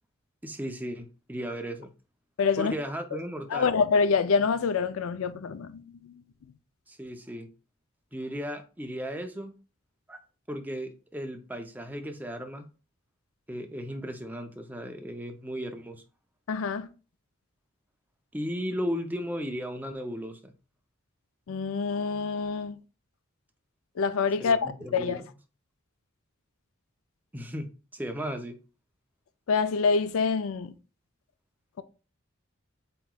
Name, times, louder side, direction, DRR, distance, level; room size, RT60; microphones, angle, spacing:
voice 1, 0.4-1.9 2.6-3.7 6.9-7.5 8.1-9.5 10.1-10.2 10.5-12.7 13.5-16.0 18.3-20.5 24.4-25.2 27.3-28.6, equal, 10° right, 0.5 m, -35 dB
voice 2, 2.4-2.7 3.5-6.2 16.5-16.9 21.5-22.8 24.0-25.2 29.5-30.7, left 5 dB, 80° left, 0.4 m, -26 dB
7.4 x 3.0 x 2.3 m
head